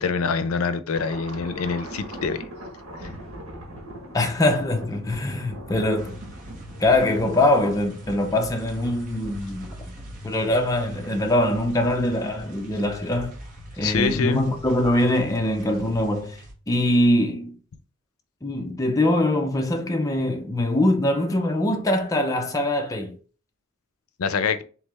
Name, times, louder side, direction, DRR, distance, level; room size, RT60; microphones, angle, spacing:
voice 1, 0.0-2.4 3.0-3.1 13.8-14.5 24.2-24.6, left 5 dB, 85° left, 0.5 m, -25 dB
sound 1, 0.9-7.4, right 1 dB, 80° right, 1.4 m, -40 dB
voice 2, 4.1-6.2 6.8-9.7 10.2-13.4 13.8-16.4 16.7-17.6 18.4-23.1, left 1 dB, 15° left, 0.5 m, -23 dB
sound 2, 6.0-16.5, equal, 40° right, 1.2 m, -41 dB
3.6 x 3.1 x 3.4 m
head